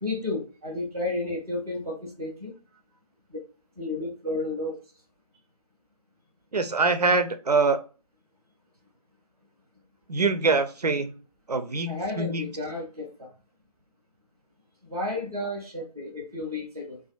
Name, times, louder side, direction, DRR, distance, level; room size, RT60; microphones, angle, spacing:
voice 1, 0.0-2.5 3.3-3.4 3.8-4.7 11.9-13.3 14.8-17.0, left 2 dB, 5° right, -11 dB, 0.3 m, -32 dB
voice 2, 6.5-7.8 10.1-11.2 11.5-12.4, right 3 dB, 90° right, 9 dB, 0.5 m, -24 dB
2.4 x 2.4 x 2.5 m, 0.34 s
figure-of-eight pair, 150°, 20 cm